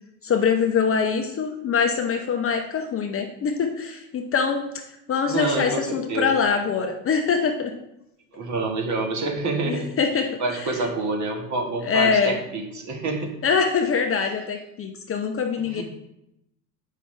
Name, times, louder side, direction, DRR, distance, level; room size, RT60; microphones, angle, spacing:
voice 1, 0.2-4.6 5.1-7.7 9.6-10.7 11.8-12.4 13.4-15.8, left 6 dB, 30° left, 4 dB, 0.7 m, -23 dB
voice 2, 5.3-6.3 8.3-9.9 10.4-13.3 15.7-15.8, right 3 dB, 35° right, 2 dB, 1.6 m, -27 dB
7.5 x 5.6 x 3.3 m, 0.83 s
hypercardioid pair, 90°, 48 cm